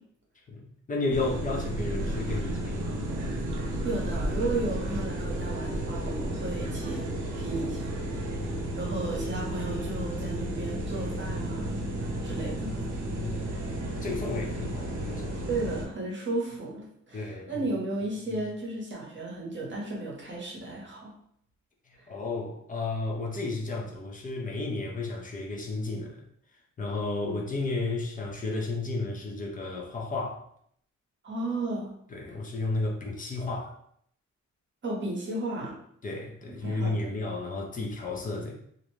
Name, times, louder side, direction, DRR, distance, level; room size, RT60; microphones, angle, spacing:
voice 1, 0.9-3.0 8.4-8.7 13.2-13.6 14.0-15.4 17.1-17.5 22.1-26.2 26.8-30.4 32.1-33.7 36.0-38.5, left 3 dB, 25° left, 0 dB, 0.5 m, -32 dB
sound 1, 1.1-15.8, right 1 dB, 70° right, 0.7 m, -32 dB
voice 2, 3.6-7.1 7.4-7.9 8.4-11.9 12.2-12.8 15.5-21.1 22.0-22.1 27.2-27.4 31.2-31.9 34.8-35.7 36.5-37.1, right 2 dB, 40° right, -3 dB, 0.8 m, -34 dB
2.5 x 2.1 x 3.0 m, 0.67 s
wide cardioid pair, 160°, 31 cm